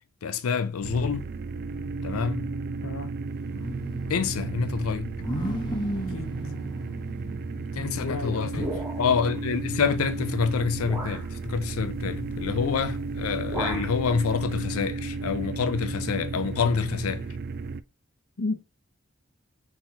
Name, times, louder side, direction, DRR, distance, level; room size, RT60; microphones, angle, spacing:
voice 1, 0.2-1.3 2.0-2.5 4.1-5.2 7.8-8.7 9.0-17.3, left 6 dB, 90° left, 0.5 m, -27 dB
sound 1, 0.8-17.8, right 4 dB, 50° right, 0.3 m, -33 dB
sound 2, 3.3-8.3 8.9-9.0 9.4-11.1, equal, 20° left, 0.9 m, -36 dB
voice 2, 6.1-6.5 7.6-8.7 18.4-18.6, left 2 dB, 70° left, 0.8 m, -34 dB
sound 3, 8.5-9.3 10.2-10.3 10.8-11.3 12.7-12.9 13.2-14.0, right 1 dB, 15° right, 1.6 m, -35 dB
4.1 x 3.9 x 2.9 m
head